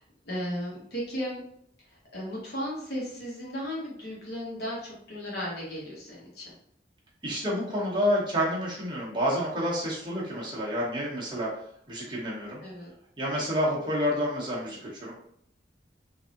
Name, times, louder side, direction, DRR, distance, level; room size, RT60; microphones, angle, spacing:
voice 1, 0.2-1.4 1.9-6.5 12.6-12.9, equal, 65° left, -5 dB, 1.2 m, -35 dB
voice 2, 7.2-11.5 11.9-12.6 13.2-15.1, equal, 25° right, -5 dB, 1.0 m, -29 dB
3.3 x 2.7 x 2.5 m, 0.68 s
head